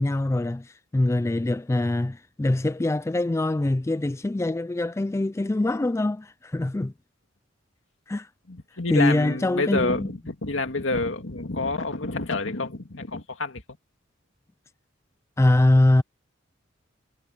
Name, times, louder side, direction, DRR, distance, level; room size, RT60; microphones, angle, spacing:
voice 1, 0.0-6.9 8.1-8.3 8.9-10.2 15.4-16.0, left 2 dB, 15° left, 0.3 m, -23 dB
voice 2, 8.5-13.6, left 3 dB, 75° left, 2.3 m, -28 dB
head